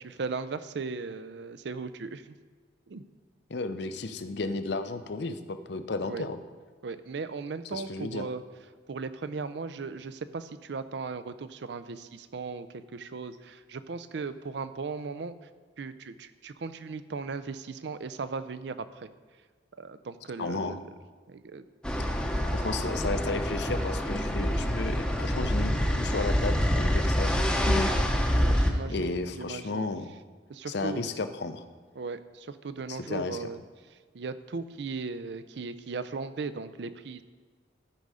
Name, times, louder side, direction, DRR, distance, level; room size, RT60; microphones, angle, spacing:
voice 1, 0.0-2.3 2.9-3.0 6.0-6.3 6.8-8.4 8.9-15.3 15.8-19.1 19.8-20.8 21.3-21.6 22.0-22.1 27.9-29.1 29.4-29.8 30.5-31.0 32.0-33.6 34.1-37.2, right 4 dB, 65° right, 13 dB, 0.5 m, -37 dB
voice 2, 3.5-6.4 7.7-8.3 20.4-20.8 22.5-27.9 28.9-30.1 30.7-31.6 32.9-33.5, left 3 dB, 60° left, 9 dB, 0.6 m, -33 dB
sound 1, 21.8-28.7, equal, 5° left, 0.7 m, -26 dB
13.0 x 5.4 x 4.9 m, 1.5 s
head